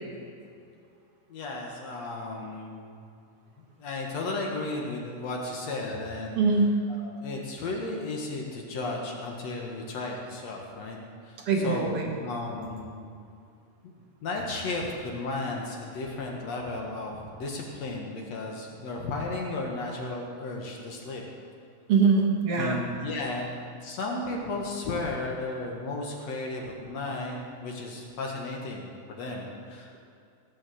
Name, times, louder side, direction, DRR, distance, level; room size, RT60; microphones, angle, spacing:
voice 1, 1.3-3.0 3.6-6.4 7.0-11.0 11.2-11.4 11.6-13.1 13.8-13.9 14.2-21.2 22.5-23.5 23.8-27.4 27.6-30.0, left 2 dB, 55° left, -1 dB, 2.3 m, -34 dB
voice 2, 6.4-6.8 11.5-12.1 21.9-22.8, right 4 dB, 50° right, 0 dB, 2.1 m, -23 dB
18.0 x 6.3 x 7.7 m, 2.4 s
omnidirectional pair, 4.2 m